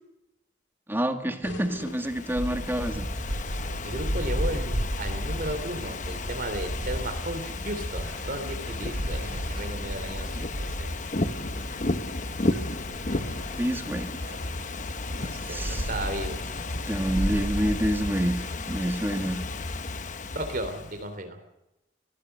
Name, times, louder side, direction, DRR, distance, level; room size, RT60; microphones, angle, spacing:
voice 1, 0.9-3.1 13.6-14.2 15.4-15.9 16.9-19.5, equal, 10° right, 6 dB, 2.1 m, -28 dB
sound 1, 1.4-2.9, left 2 dB, 80° left, 2.4 m, -44 dB
Ocean / Fireworks, 1.8-21.1, left 2 dB, 40° left, 1.1 m, -34 dB
sound 2, 2.3-18.1, equal, 70° right, 6.4 m, -35 dB
voice 2, 3.8-10.9 15.2-16.4 20.3-21.4, right 1 dB, 45° right, 6 dB, 3.3 m, -35 dB
24.0 x 18.0 x 6.8 m, 0.92 s
head